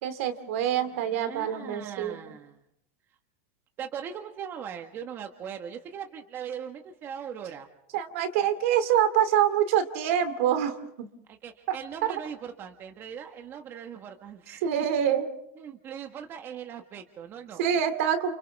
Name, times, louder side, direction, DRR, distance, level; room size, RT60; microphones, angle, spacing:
voice 1, 0.0-2.3 7.9-11.1 11.7-11.8 12.1-12.2 14.6-15.3 17.6-18.4, right 9 dB, 70° right, 8 dB, 2.7 m, -26 dB
voice 2, 0.9-2.6 3.8-7.7 11.3-14.7 15.6-17.6, right 8 dB, 30° right, 4 dB, 1.6 m, -40 dB
29.5 x 29.5 x 3.6 m, 0.77 s
supercardioid pair, 145°, 8 cm